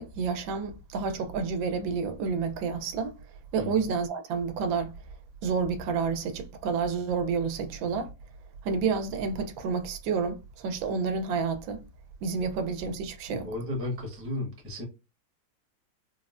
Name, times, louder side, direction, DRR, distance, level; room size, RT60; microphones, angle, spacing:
voice 1, 0.0-3.2 3.5-4.9 5.4-8.1 8.6-11.8 12.2-13.5, right 5 dB, 85° right, 1.3 m, -29 dB
voice 2, 13.3-14.8, left 2 dB, 15° right, 0.5 m, -34 dB
3.8 x 2.0 x 2.4 m
omnidirectional pair, 2.1 m